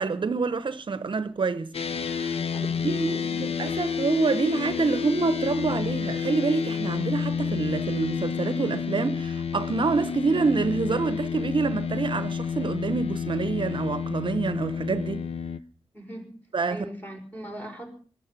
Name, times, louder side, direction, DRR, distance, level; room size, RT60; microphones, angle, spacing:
voice 1, 0.0-2.4 2.8-15.3 16.5-16.9, right 4 dB, 50° right, 0.8 m, -27 dB
sound 1, 1.7-15.6, left 6 dB, 65° left, 0.8 m, -30 dB
voice 2, 2.4-3.5 15.9-16.3 16.7-17.9, right 1 dB, 15° left, 5.2 m, -40 dB
20.0 x 12.0 x 6.0 m
wide cardioid pair, 120°, 11 cm